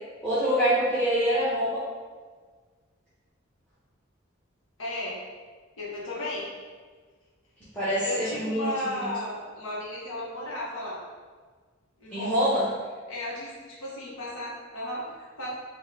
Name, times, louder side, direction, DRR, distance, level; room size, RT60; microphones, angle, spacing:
voice 1, 0.2-1.8 7.7-9.1 12.1-12.6, equal, 10° left, -11 dB, 1.1 m, -25 dB
voice 2, 4.8-5.2 5.8-6.4 8.0-11.0 12.0-12.4 13.1-15.5, left 1 dB, 85° left, -6 dB, 1.3 m, -34 dB
4.4 x 2.6 x 3.4 m, 1.5 s
head